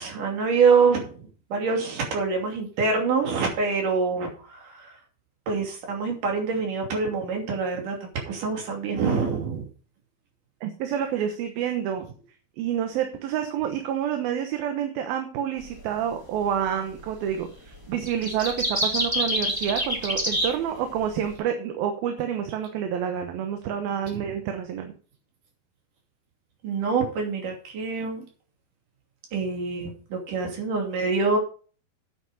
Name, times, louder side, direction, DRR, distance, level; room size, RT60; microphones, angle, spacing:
voice 1, 0.0-4.9 5.5-9.7 24.1-24.3 26.6-28.2 29.3-31.4, right 4 dB, 60° right, 1 dB, 4.2 m, -25 dB
voice 2, 10.6-12.0 12.6-24.9, right 9 dB, 75° right, 6 dB, 2.9 m, -28 dB
sound 1, 15.6-15.8 17.0-17.4 17.7-21.3, equal, 10° right, 1.6 m, -27 dB
9.1 x 8.2 x 5.3 m, 0.39 s
omnidirectional pair, 4.4 m